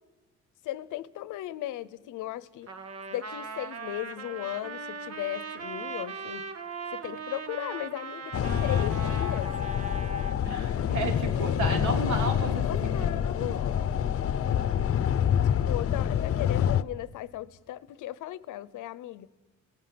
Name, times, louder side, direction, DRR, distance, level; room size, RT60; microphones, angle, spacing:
voice 1, 0.6-2.7 3.1-6.4 6.9-9.5 12.6-13.9 15.4-19.3, left 14 dB, 85° left, 0.8 m, -37 dB
Trumpet, 2.7-10.4, right 5 dB, 55° right, 1.7 m, -39 dB
sound 1, 8.3-16.8, left 9 dB, 50° left, 0.8 m, -27 dB
voice 2, 10.4-13.9 14.5-14.9, right 3 dB, 75° right, 3.2 m, -34 dB
27.0 x 18.0 x 9.6 m
cardioid pair, 90°, 30 cm